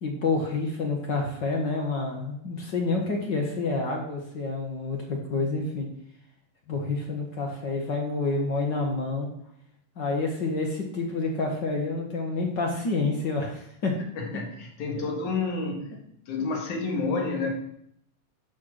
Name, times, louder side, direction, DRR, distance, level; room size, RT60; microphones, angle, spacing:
voice 1, 0.0-5.9 6.7-9.3 10.0-13.9, left 3 dB, 45° left, 1 dB, 1.8 m, -28 dB
voice 2, 14.2-16.0 16.3-17.5, left 3 dB, 75° left, 1 dB, 3.3 m, -29 dB
11.5 x 6.0 x 6.5 m, 0.71 s
omnidirectional pair, 3.6 m